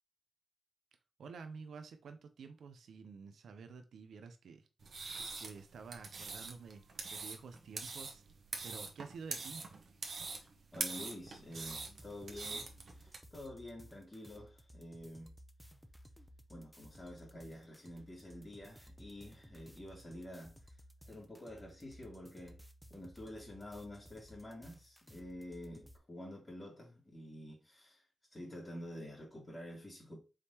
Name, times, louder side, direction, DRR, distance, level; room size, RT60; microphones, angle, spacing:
voice 1, 1.2-5.0 5.4-8.2 8.6-9.6, right 5 dB, 85° right, 0.5 m, -50 dB
sound 1, 4.8-13.2, right 4 dB, 70° right, 0.9 m, -44 dB
voice 2, 10.7-15.3 16.5-20.6 21.0-22.6 22.9-28.0 28.3-30.2, left 1 dB, 30° left, 2.3 m, -49 dB
sound 2, 11.5-26.0, equal, ahead, 0.7 m, -58 dB
4.8 x 3.4 x 2.8 m
cardioid pair, 55°, 0 cm